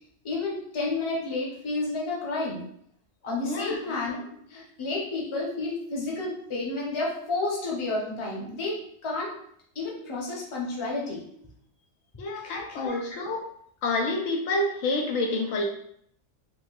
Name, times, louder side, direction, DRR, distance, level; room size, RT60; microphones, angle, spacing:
voice 1, 0.2-2.6 3.2-8.8 9.0-9.3 9.7-11.2 12.3-13.0, left 3 dB, 25° left, -4 dB, 0.8 m, -31 dB
voice 2, 3.4-3.8 12.2-13.4 13.8-15.7, left 2 dB, 75° left, 1 dB, 1.0 m, -28 dB
4.3 x 2.7 x 2.3 m, 0.67 s
omnidirectional pair, 1.4 m